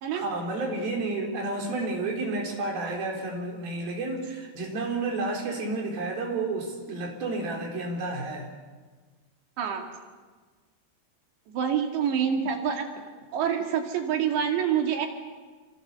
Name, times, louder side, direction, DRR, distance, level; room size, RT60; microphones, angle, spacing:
voice 1, 0.1-8.5, right 2 dB, 60° right, 0 dB, 5.9 m, -31 dB
voice 2, 11.5-12.9 13.3-15.1, right 8 dB, 85° right, 3 dB, 4.5 m, -26 dB
28.5 x 26.0 x 6.9 m, 1.5 s
omnidirectional pair, 4.9 m